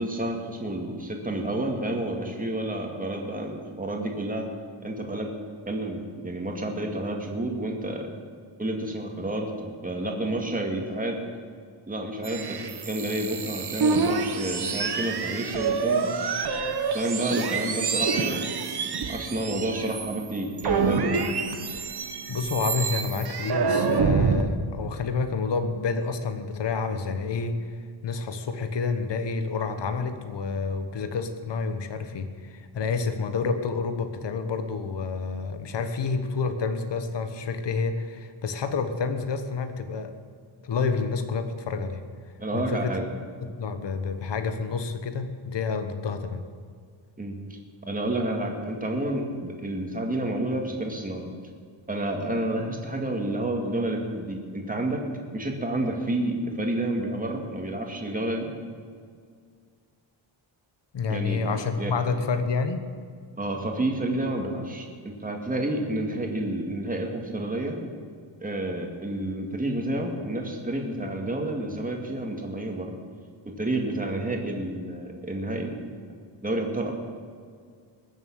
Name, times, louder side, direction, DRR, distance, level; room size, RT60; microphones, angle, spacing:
voice 1, 0.0-4.5 4.8-5.3 5.7-8.1 8.6-11.2 11.9-16.1 16.9-18.5 19.1-21.2 42.4-43.1 47.2-51.3 51.9-55.0 55.3-58.5 61.1-61.9 63.4-67.8 68.4-72.9 73.5-76.9, right 1 dB, 15° right, 1 dB, 2.1 m, -30 dB
sound 1, 12.2-20.3 20.6-24.4, right 5 dB, 50° right, 1.2 m, -27 dB
voice 2, 22.3-40.1 40.6-42.0 42.5-43.0 43.4-46.4 60.9-62.8, left 4 dB, 60° left, 8 dB, 1.3 m, -29 dB
21.0 x 7.4 x 8.6 m, 2.1 s
wide cardioid pair, 165°, 48 cm